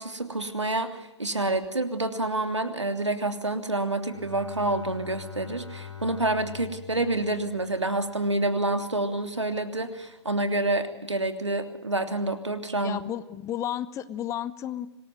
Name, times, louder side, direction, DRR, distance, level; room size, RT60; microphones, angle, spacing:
voice 1, 0.0-13.0, right 2 dB, 90° right, 7 dB, 3.1 m, -28 dB
Bowed string instrument, 4.0-8.5, left 8 dB, 90° left, 3.9 m, -44 dB
voice 2, 12.8-14.9, left 11 dB, 20° left, 15 dB, 1.2 m, -32 dB
25.0 x 21.0 x 9.3 m, 1.0 s
figure-of-eight pair, 120°, 15 cm